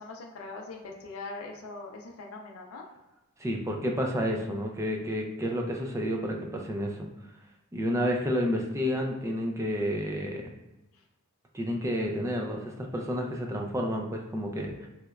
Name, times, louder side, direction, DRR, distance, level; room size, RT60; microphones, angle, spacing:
voice 1, 0.0-2.8, left 3 dB, 70° left, 1 dB, 0.4 m, -41 dB
voice 2, 3.4-7.1 7.7-10.5 11.5-14.9, equal, 15° right, 1 dB, 0.3 m, -30 dB
3.2 x 2.9 x 2.3 m, 1.0 s
head